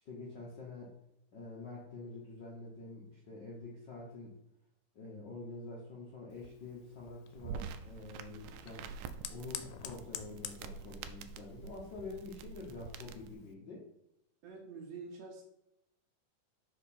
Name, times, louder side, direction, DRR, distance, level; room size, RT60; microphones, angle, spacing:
voice 1, 0.0-0.9 1.3-4.3 4.9-8.9 9.3-13.8, left 3 dB, 60° left, -4 dB, 1.1 m, -47 dB
Fire, 6.3-13.5, left 10 dB, 90° left, 2.1 m, -50 dB
sound 1, 7.4-13.4, right 6 dB, 90° right, 2.1 m, -47 dB
voice 2, 14.4-15.4, right 4 dB, 65° right, 1 dB, 2.0 m, -47 dB
5.3 x 5.0 x 4.2 m, 0.84 s
omnidirectional pair, 3.6 m